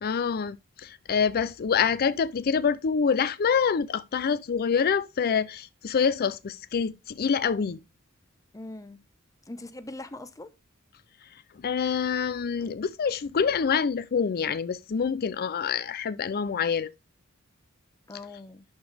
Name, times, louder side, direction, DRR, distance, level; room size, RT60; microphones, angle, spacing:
voice 1, 0.0-7.8 11.6-16.9, left 6 dB, 45° left, 0.4 m, -26 dB
voice 2, 8.5-9.0 9.5-10.5 18.1-18.6, left 2 dB, 15° left, 0.8 m, -41 dB
11.0 x 5.1 x 3.3 m
head